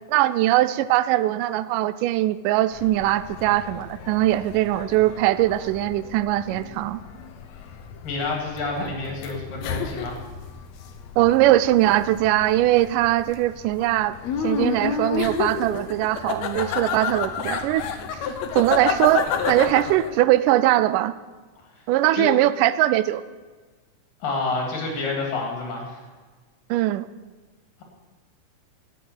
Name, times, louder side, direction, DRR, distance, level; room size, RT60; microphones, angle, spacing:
voice 1, 0.1-7.0 11.2-14.2 14.4-17.8 18.1-18.3 18.6-21.1 21.9-23.2 26.7-27.1, right 15 dB, 80° right, 14 dB, 2.1 m, -21 dB
sound 1, 2.7-20.2, left 6 dB, 65° left, 2.0 m, -31 dB
voice 2, 8.0-10.2 21.7-21.8 22.1-22.3 24.2-26.0, left 3 dB, 85° left, 1 dB, 4.6 m, -28 dB
12.5 x 8.3 x 9.7 m, 1.3 s
omnidirectional pair, 3.8 m